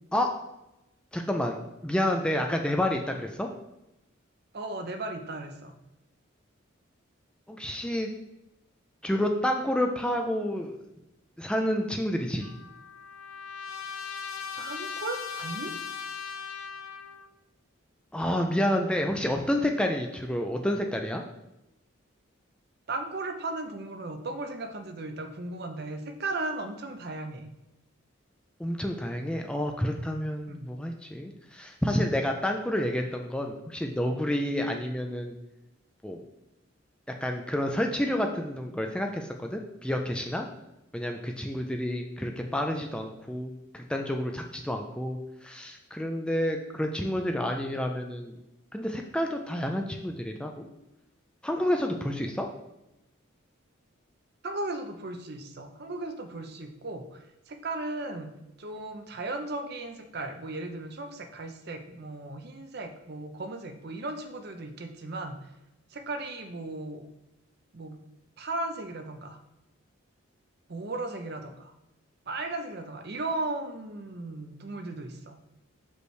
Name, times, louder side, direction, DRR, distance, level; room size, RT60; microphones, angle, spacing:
voice 1, 1.1-1.6 1.8-3.5 7.5-8.1 9.0-10.8 11.4-12.5 18.1-21.2 28.6-35.3 36.0-36.2 37.2-40.5 40.9-48.4 48.7-50.7 51.4-52.5, left 1 dB, 5° left, 3 dB, 0.3 m, -29 dB
voice 2, 4.5-5.7 14.6-15.7 22.9-27.5 30.5-30.7 54.4-58.3 58.6-65.4 65.9-67.0 67.7-68.0 68.4-69.4 70.7-71.7 72.3-75.4, right 2 dB, 50° right, 6 dB, 0.6 m, -36 dB
Trumpet, 12.4-17.3, left 6 dB, 80° left, 0.6 m, -38 dB
6.3 x 5.3 x 3.2 m, 0.91 s
head